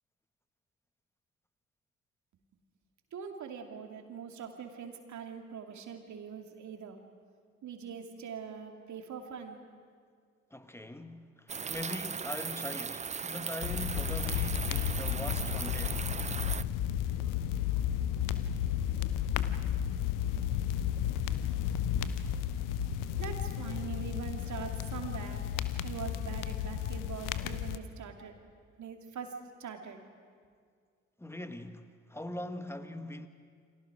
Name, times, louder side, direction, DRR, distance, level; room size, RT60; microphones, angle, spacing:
voice 1, 3.1-7.0 7.6-9.6 23.2-25.4 25.8-28.3 28.8-29.3 29.6-30.0, right 7 dB, 55° right, 2.7 m, -42 dB
voice 2, 10.5-16.1 31.2-33.3, left 1 dB, 5° left, 1.7 m, -42 dB
sound 1, 11.5-16.6, right 6 dB, 20° right, 0.5 m, -38 dB
sound 2, 13.6-27.8, left 10 dB, 65° left, 1.0 m, -33 dB
29.5 x 25.5 x 5.0 m
figure-of-eight pair, 40°, 35 cm